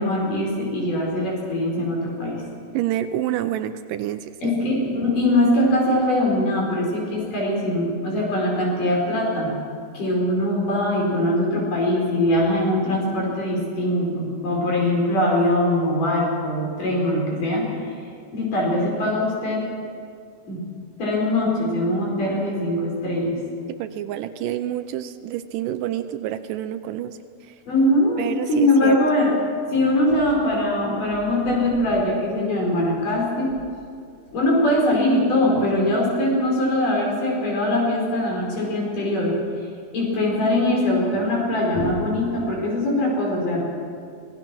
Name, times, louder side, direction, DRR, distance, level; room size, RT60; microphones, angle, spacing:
voice 1, 0.0-2.4 4.4-9.6 9.9-17.8 18.3-19.6 20.4-20.6 21.0-23.4 27.7-28.2 28.5-29.4 29.7-33.6 34.3-39.3 39.9-43.6, left 1 dB, 65° left, -2 dB, 6.5 m, -22 dB
voice 2, 2.7-4.6 23.7-27.6 28.2-29.0, right 12 dB, 80° right, 10 dB, 2.1 m, -28 dB
26.0 x 18.0 x 6.1 m, 2.4 s
omnidirectional pair, 4.1 m